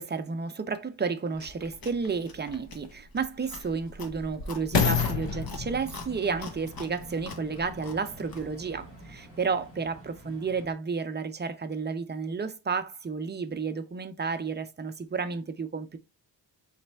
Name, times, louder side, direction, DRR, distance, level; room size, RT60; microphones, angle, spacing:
voice 1, 0.0-8.9 9.4-16.0, right 5 dB, 25° right, 0.4 m, -32 dB
Chewing mastication, 1.3-8.6, left 4 dB, 55° left, 0.9 m, -46 dB
sound 1, 1.7-1.8 2.5-7.8 8.5-8.6, left 6 dB, 75° left, 1.0 m, -31 dB
sound 2, 5.0-10.7, right 1 dB, 30° left, 1.3 m, -47 dB
4.2 x 3.2 x 3.2 m
wide cardioid pair, 150°, 43 cm